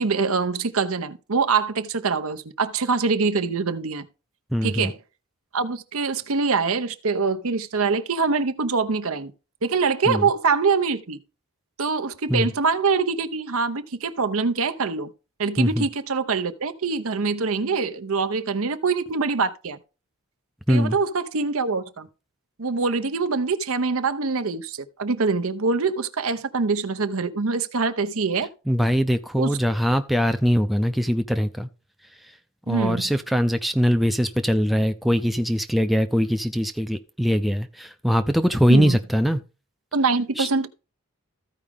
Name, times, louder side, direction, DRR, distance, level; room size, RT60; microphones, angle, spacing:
voice 1, 0.0-4.1 4.6-4.9 5.5-9.3 9.6-11.2 11.8-15.1 15.4-19.8 20.7-22.1 22.6-28.5 29.3-29.6 32.7-33.0 38.7-39.0 39.9-40.7, right 4 dB, 70° right, 0.8 m, -24 dB
voice 2, 4.5-4.9 10.1-10.3 12.3-12.5 15.6-15.9 20.7-21.0 28.7-31.7 32.7-39.4 40.4-40.5, equal, ahead, 0.4 m, -22 dB
14.5 x 4.9 x 3.5 m
head